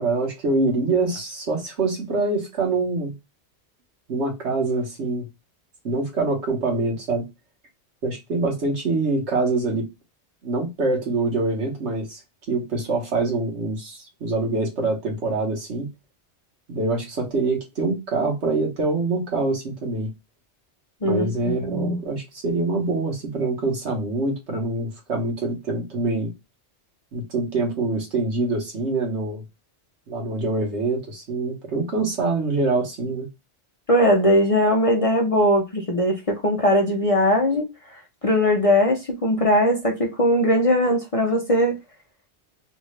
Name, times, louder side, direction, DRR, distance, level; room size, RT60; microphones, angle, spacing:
voice 1, 0.0-3.1 4.1-5.3 5.8-7.3 8.0-9.9 10.4-12.2 12.5-15.9 16.7-20.1 21.0-26.3 27.1-29.4 30.1-33.3, right 3 dB, 70° right, 1.5 m, -25 dB
voice 2, 21.0-22.0 33.9-41.8, equal, 35° left, 0.7 m, -20 dB
3.4 x 2.6 x 3.2 m
omnidirectional pair, 1.2 m